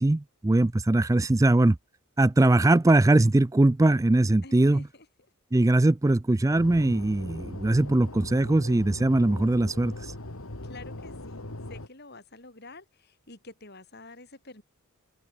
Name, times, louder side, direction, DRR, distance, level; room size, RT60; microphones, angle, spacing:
voice 1, 0.0-1.8 2.2-4.9 5.5-10.1, right 2 dB, 15° right, 0.4 m, -21 dB
voice 2, 4.4-5.1 10.6-14.6, left 2 dB, 50° left, 6.9 m, -48 dB
sound 1, 6.5-11.9, left 1 dB, 80° left, 2.6 m, -40 dB
head